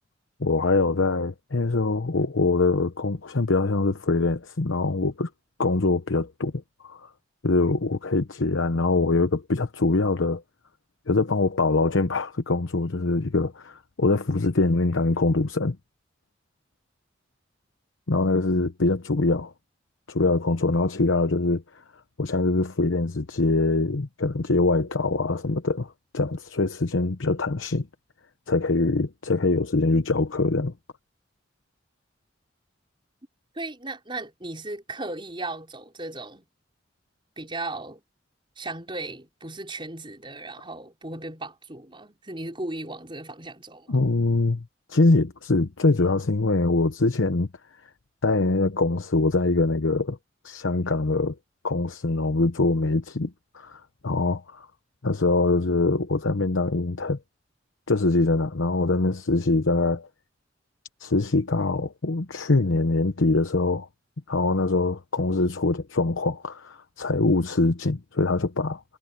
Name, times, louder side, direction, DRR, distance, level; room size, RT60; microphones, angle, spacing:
voice 1, 0.4-5.3 5.6-7.1 7.4-10.4 11.1-15.8 18.1-19.5 20.1-21.6 22.2-27.9 28.5-30.7 43.9-47.5 48.2-50.2 50.4-51.3 51.6-54.7 55.0-57.2 57.9-60.1 61.0-63.9 64.3-68.8, left 3 dB, 90° left, 0.9 m, -23 dB
voice 2, 33.5-36.4 37.4-38.0 38.6-44.0, right 2 dB, 25° right, 5.5 m, -36 dB
head